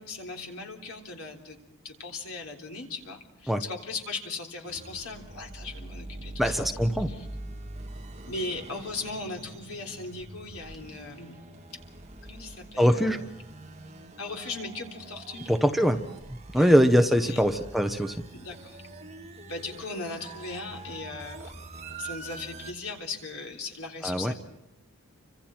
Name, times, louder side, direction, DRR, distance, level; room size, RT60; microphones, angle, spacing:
voice 1, 0.0-1.6 1.8-6.7 7.1-7.3 8.3-11.4 12.2-13.3 14.2-15.5 16.5-16.7 17.2-17.4 18.3-18.8 19.5-21.5 22.0-24.3, left 3 dB, 75° left, 1 dB, 3.6 m, -38 dB
sound 1, 4.6-22.7, right 2 dB, 30° right, 1.7 m, -44 dB
voice 2, 6.4-7.1 12.8-13.2 15.5-16.0 16.5-18.2 24.0-24.3, equal, ahead, 5 dB, 0.9 m, -22 dB
29.5 x 25.5 x 4.5 m, 0.94 s
head